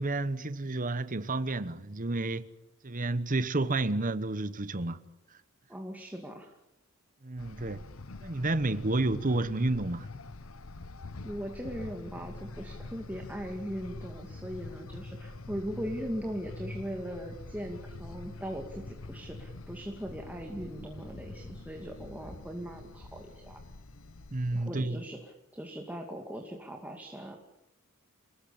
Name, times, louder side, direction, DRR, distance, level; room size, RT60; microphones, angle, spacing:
voice 1, 0.0-2.5 2.8-5.0 7.2-7.8 8.2-10.1 24.3-25.0, right 2 dB, 40° right, 1.1 m, -30 dB
voice 2, 5.7-6.6 11.2-23.6 24.5-27.4, equal, 10° right, 2.4 m, -39 dB
sound 1, 7.4-24.6, left 2 dB, 70° left, 1.0 m, -45 dB
29.0 x 20.5 x 8.7 m
head